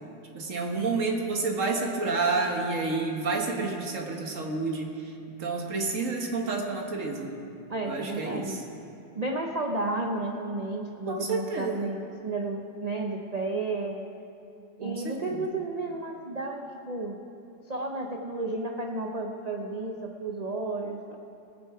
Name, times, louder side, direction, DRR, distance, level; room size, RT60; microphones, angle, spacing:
voice 1, 0.3-5.1 5.4-7.3 7.8-8.6 11.1-11.9 14.8-15.4, right 3 dB, 50° right, 1 dB, 1.6 m, -29 dB
voice 2, 7.7-8.6 9.1-14.0 14.8-17.2 17.7-21.2, right 2 dB, 80° right, 1 dB, 0.3 m, -32 dB
19.0 x 7.5 x 4.8 m, 2.7 s
omnidirectional pair, 1.9 m